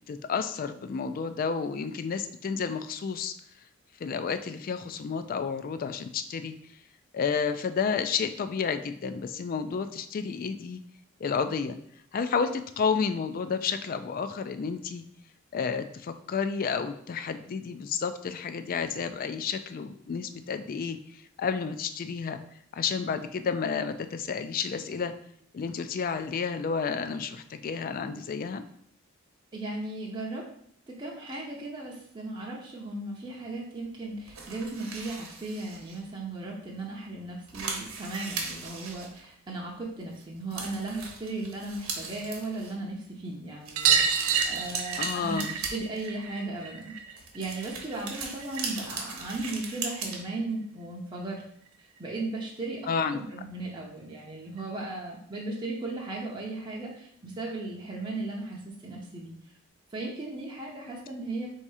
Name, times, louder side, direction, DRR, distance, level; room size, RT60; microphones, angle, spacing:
voice 1, 0.1-3.3 4.0-6.5 7.1-10.8 11.2-11.8 12.1-15.0 15.5-22.4 22.7-25.1 25.5-28.6 45.0-45.5 52.9-53.2, left 6 dB, 40° left, 10 dB, 0.3 m, -31 dB
voice 2, 29.5-30.4 31.0-51.4 51.8-52.8 53.1-59.4 59.9-61.5, right 2 dB, 20° right, -3 dB, 0.6 m, -36 dB
sound 1, 34.3-36.0 36.6-36.7 37.0-37.1 37.3-39.6 40.1-40.2 40.5-42.7 43.6-46.3 47.1-50.2, right 4 dB, 75° right, 0.9 m, -38 dB
sound 2, 43.8-48.9 49.2-50.3 51.7-51.8 52.0-52.1 52.4-52.5 53.8-53.9 54.1-54.2 54.6-54.7 55.9-56.0 56.8-56.9, right 7 dB, 90° right, 0.5 m, -30 dB
3.6 x 2.8 x 4.7 m, 0.66 s
head